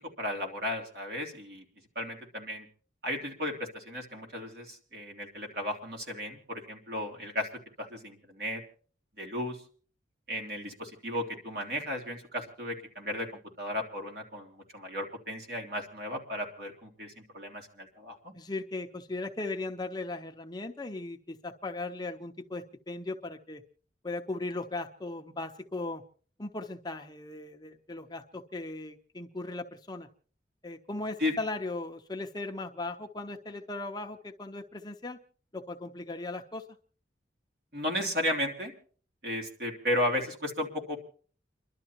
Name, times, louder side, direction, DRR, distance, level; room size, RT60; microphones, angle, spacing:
voice 1, 0.2-1.6 1.9-2.7 3.0-7.5 7.8-8.6 9.2-9.6 10.3-13.3 13.6-18.3 31.2-31.3 37.7-38.7 39.2-41.0, left 1 dB, 55° right, 1 dB, 3.2 m, -34 dB
voice 2, 18.3-23.6 24.0-26.0 26.4-30.1 30.6-35.2 35.5-36.6, left 2 dB, 20° left, 4 dB, 0.8 m, -38 dB
30.0 x 12.0 x 3.0 m, 0.43 s
head